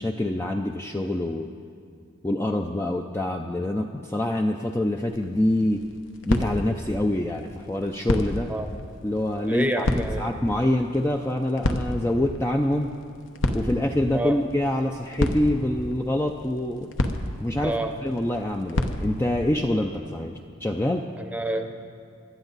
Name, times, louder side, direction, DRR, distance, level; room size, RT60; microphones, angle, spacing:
voice 1, 0.0-1.5 2.2-5.8 6.3-8.5 9.0-12.9 13.5-16.9 17.4-21.1, left 1 dB, 10° left, 2 dB, 0.4 m, -26 dB
sound 1, 5.1-19.6, left 1 dB, 65° left, 1.0 m, -32 dB
voice 2, 9.4-10.7 14.1-14.4 17.6-17.9 21.2-21.8, right 1 dB, 5° right, 5 dB, 0.8 m, -29 dB
26.5 x 12.0 x 4.0 m, 2.3 s
head